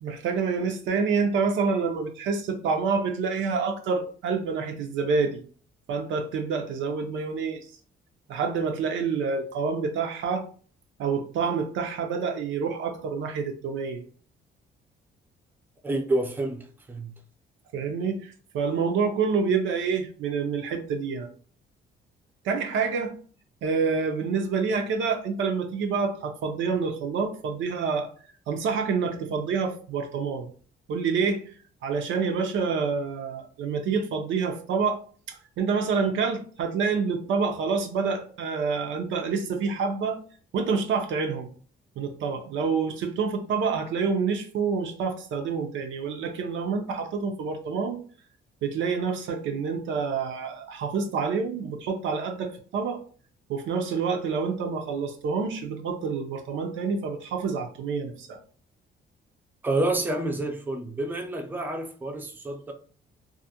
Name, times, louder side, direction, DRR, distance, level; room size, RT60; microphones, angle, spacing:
voice 1, 0.0-5.4 5.9-7.6 8.3-10.5 11.0-14.0 17.7-21.3 22.4-23.1 23.6-28.1 28.5-30.5 30.9-31.4 31.8-35.0 35.3-40.2 40.5-41.5 42.0-48.0 48.6-53.0 53.5-58.4, right 5 dB, 75° right, 0.5 m, -27 dB
voice 2, 15.8-17.1 59.6-62.7, right 2 dB, 10° right, 0.4 m, -28 dB
2.4 x 2.0 x 2.7 m
cardioid pair, 90°, 20 cm